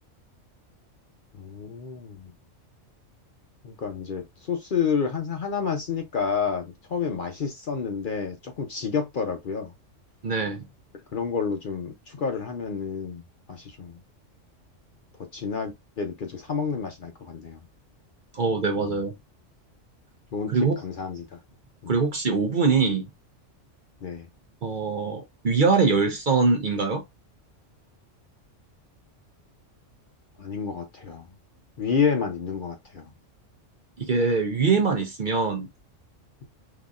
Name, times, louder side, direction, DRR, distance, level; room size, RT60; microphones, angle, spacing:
voice 1, 1.3-2.3 3.6-9.7 11.1-13.2 13.5-14.0 15.3-17.6 18.8-18.9 20.3-20.5 20.8-21.4 21.8-21.9 24.0-24.3 30.4-31.3 31.8-33.1, left 6 dB, 50° left, 0.7 m, -29 dB
voice 2, 10.2-10.6 18.3-19.1 20.5-20.8 21.9-23.0 24.6-27.0 34.0-35.7, right 4 dB, 45° right, 0.8 m, -23 dB
3.9 x 2.9 x 2.3 m
omnidirectional pair, 1.3 m